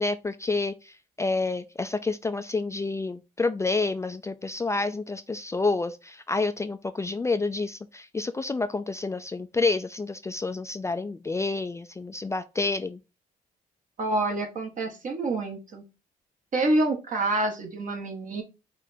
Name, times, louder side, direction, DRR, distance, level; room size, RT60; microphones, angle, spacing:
voice 1, 0.0-13.0, left 3 dB, 20° left, 0.4 m, -29 dB
voice 2, 14.0-15.8 16.5-18.4, right 2 dB, 55° right, 1.6 m, -27 dB
4.9 x 2.5 x 4.2 m
cardioid pair, 75°, 16 cm